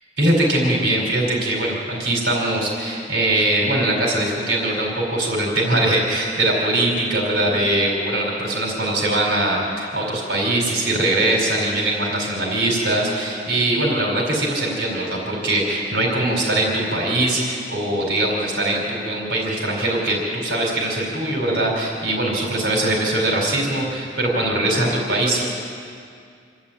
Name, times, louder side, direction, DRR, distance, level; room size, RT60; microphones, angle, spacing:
voice 1, 0.2-25.4, right 1 dB, 65° right, -1 dB, 4.6 m, -21 dB
27.5 x 13.0 x 8.7 m, 2.3 s
head